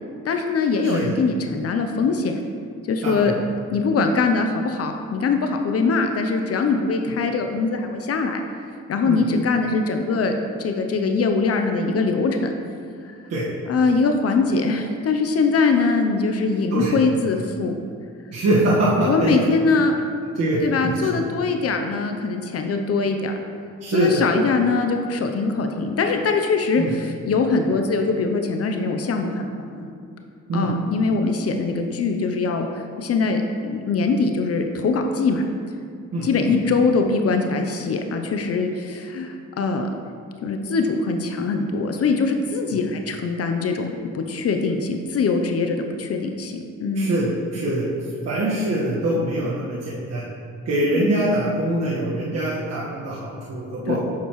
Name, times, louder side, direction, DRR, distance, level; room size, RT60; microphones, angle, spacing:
voice 1, 0.2-2.3 2.9-3.3 3.7-8.4 8.9-10.3 10.6-12.5 13.0-13.1 13.7-17.8 19.1-19.9 20.6-23.3 23.9-29.9 30.5-35.4 36.2-39.9 40.4-43.9 44.1-47.1 50.8-51.1 53.9-54.0, left 4 dB, 50° left, 5 dB, 0.6 m, -22 dB
voice 2, 16.7-17.0 18.3-19.4 20.4-20.6 21.1-21.2 23.8-24.2 26.8-26.9 30.5-30.7 36.1-36.3 46.9-47.9 48.2-50.2 50.6-54.0, right 1 dB, 55° right, -7 dB, 1.5 m, -23 dB
8.1 x 6.6 x 3.1 m, 2.3 s
cardioid pair, 90°, 30 cm